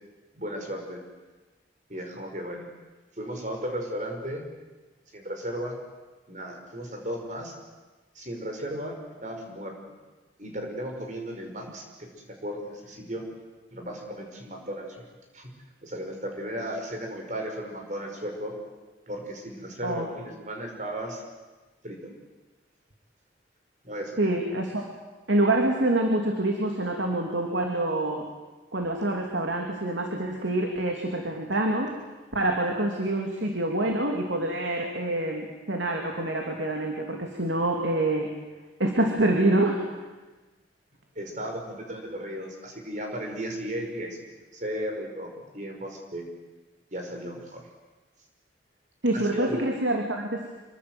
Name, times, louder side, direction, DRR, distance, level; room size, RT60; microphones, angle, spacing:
voice 1, 0.4-1.0 1.9-2.7 3.1-4.4 5.1-5.8 6.3-7.5 8.1-9.0 9.2-10.0 10.4-13.3 13.7-15.0 15.3-15.5 15.8-18.6 19.1-21.2 21.8-22.1 23.8-24.4 41.2-44.2 44.5-46.3 46.9-47.7 49.1-49.6, equal, 40° right, 2 dB, 5.3 m, -35 dB
voice 2, 24.2-24.9 25.3-28.2 28.7-31.9 32.3-38.3 38.8-39.8 49.0-50.4, right 1 dB, 85° right, 2 dB, 3.0 m, -26 dB
26.5 x 23.0 x 8.1 m, 1.2 s
head